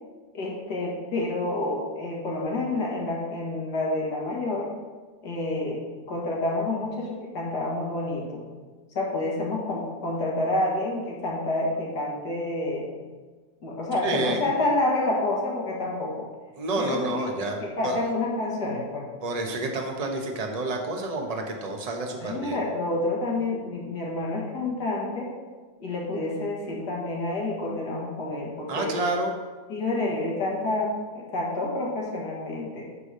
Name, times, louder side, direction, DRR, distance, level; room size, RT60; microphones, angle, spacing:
voice 1, 0.3-4.7 5.2-5.8 6.1-8.4 8.9-12.9 13.6-16.3 16.8-19.1 22.2-25.3 25.8-28.9 29.7-32.9, left 2 dB, 85° left, -3 dB, 2.3 m, -28 dB
voice 2, 14.0-14.5 16.6-18.0 19.2-22.6 28.7-29.3, right 2 dB, 30° right, 2 dB, 0.8 m, -29 dB
9.5 x 3.4 x 6.4 m, 1.4 s
omnidirectional pair, 1.7 m